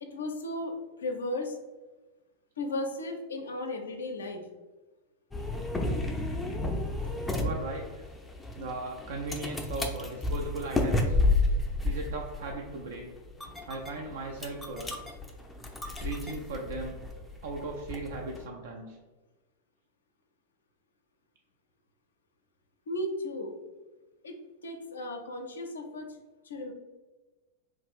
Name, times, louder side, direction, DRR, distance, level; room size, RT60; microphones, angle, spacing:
voice 1, 0.0-1.6 2.6-4.4 22.9-23.5 24.2-24.3 24.6-26.1 26.4-26.7, left 1 dB, 70° left, 4 dB, 0.4 m, -35 dB
sound 1, 5.3-18.5, left 2 dB, 10° left, 0.4 m, -31 dB
voice 2, 7.4-8.1 8.6-11.2 11.8-13.1 13.7-15.0 16.0-16.9 17.4-19.0, right 2 dB, 55° right, 1 dB, 0.4 m, -37 dB
3.0 x 2.4 x 3.4 m, 1.2 s
figure-of-eight pair, 90°, 0 cm